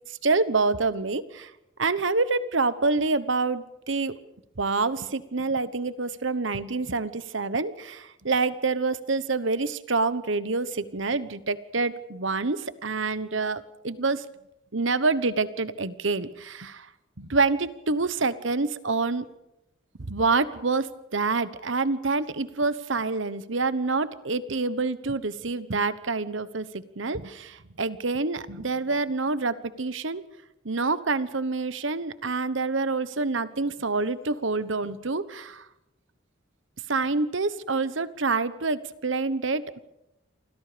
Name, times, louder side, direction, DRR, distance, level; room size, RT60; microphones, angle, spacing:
voice 1, 0.1-1.5 1.8-4.2 4.6-14.2 14.7-16.9 17.2-19.3 20.0-30.2 30.6-35.7 36.9-39.8, right 3 dB, 70° right, 14 dB, 1.2 m, -27 dB
28.5 x 24.5 x 5.2 m, 0.88 s
head